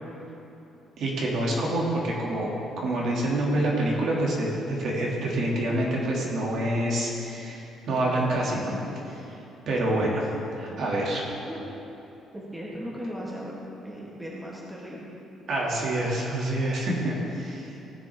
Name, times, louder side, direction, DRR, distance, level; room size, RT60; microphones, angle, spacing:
voice 1, 1.0-8.8 9.1-9.2 9.7-10.3 10.6-11.2 15.5-17.7, right 1 dB, 50° right, -3 dB, 1.9 m, -27 dB
voice 2, 12.3-13.5 13.8-15.0, equal, 5° right, -5 dB, 1.2 m, -37 dB
16.5 x 7.5 x 3.3 m, 2.9 s
cardioid pair, 175°, 0 cm